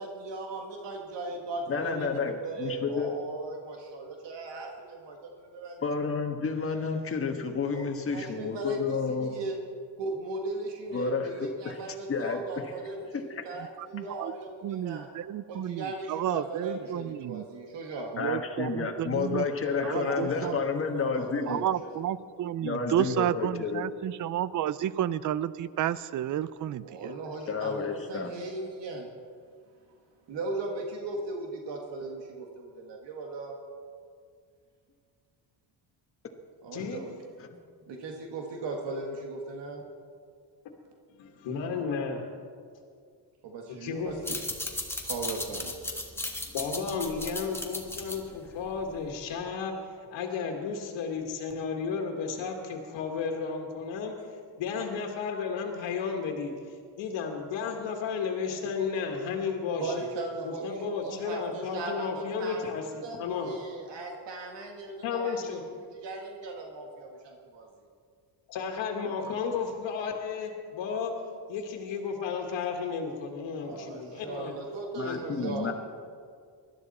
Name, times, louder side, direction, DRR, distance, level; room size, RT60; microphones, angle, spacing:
voice 1, 0.0-5.8 7.7-9.6 10.0-15.1 15.5-18.1 19.6-22.0 26.8-29.1 30.3-33.6 36.6-37.1 37.9-39.9 43.4-44.4 45.0-45.7 59.8-62.6 63.0-65.6 66.0-67.7 73.6-75.7, right 3 dB, 70° right, 1 dB, 1.9 m, -38 dB
voice 2, 1.7-3.2 5.8-9.3 10.9-11.7 12.1-12.4 13.3-13.4 18.2-21.6 22.6-23.9 27.5-28.3 37.4-37.5 75.0-75.7, left 5 dB, 30° left, 4 dB, 1.5 m, -30 dB
voice 3, 13.8-14.3 14.6-17.4 18.1-19.4 19.8-20.6 21.5-27.1, right 11 dB, 45° right, 17 dB, 0.5 m, -31 dB
voice 4, 41.1-42.2 43.8-44.4 46.5-59.9 60.4-62.9 63.2-63.5 65.0-65.6 68.5-71.1 71.5-74.5 75.0-75.7, left 5 dB, 90° left, 1 dB, 1.8 m, -33 dB
sound 1, 44.1-49.3, left 1 dB, 5° left, 1.4 m, -36 dB
20.5 x 12.5 x 4.2 m, 2.1 s
cardioid pair, 135°, 44 cm